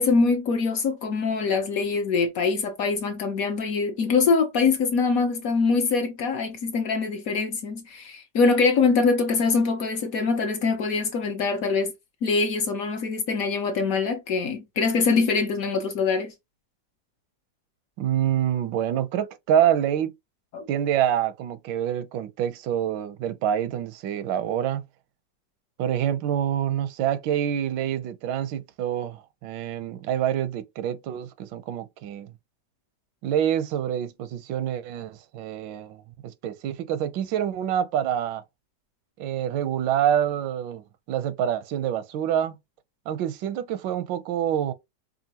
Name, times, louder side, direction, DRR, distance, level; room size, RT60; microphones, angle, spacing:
voice 1, 0.0-11.9 12.2-16.3 20.5-20.6, left 4 dB, 60° left, 1.0 m, -23 dB
voice 2, 18.0-20.1 20.7-24.8 25.8-32.3 33.2-38.4 39.2-42.6 43.1-44.7, right 10 dB, 85° right, 1.3 m, -26 dB
5.5 x 2.4 x 2.8 m
omnidirectional pair, 2.0 m